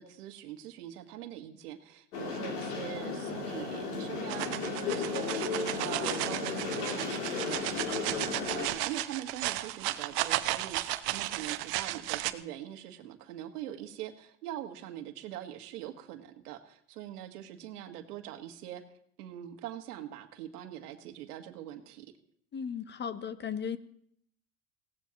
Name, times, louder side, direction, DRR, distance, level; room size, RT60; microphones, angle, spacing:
voice 1, 0.0-18.8 19.2-22.1, right 11 dB, 80° right, 7 dB, 1.6 m, -43 dB
sound 1, 2.1-8.7, left 4 dB, 90° left, 3.1 m, -35 dB
sound 2, 4.3-12.3, right 17 dB, 55° right, 0.9 m, -34 dB
voice 2, 22.5-23.8, left 7 dB, 25° left, 14 dB, 0.7 m, -36 dB
19.5 x 16.5 x 3.0 m, 0.67 s
hypercardioid pair, 100°, 46 cm